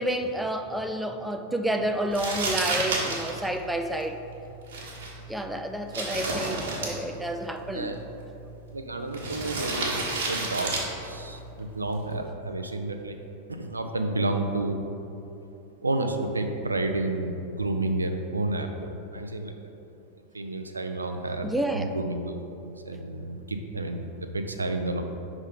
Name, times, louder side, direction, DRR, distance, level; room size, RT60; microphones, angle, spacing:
voice 1, 0.0-4.2 5.3-7.9 21.4-22.0, right 1 dB, 5° right, 5 dB, 0.3 m, -29 dB
Crumpling crinkling, 2.1-12.3, right 2 dB, 60° right, 1.2 m, -33 dB
voice 2, 7.7-8.1 8.7-10.8 11.0-13.2 13.5-14.8 15.8-19.7 20.3-25.0, right 2 dB, 80° right, 5 dB, 0.4 m, -31 dB
5.3 x 3.6 x 5.0 m, 2.8 s
figure-of-eight pair, 90°, 0 cm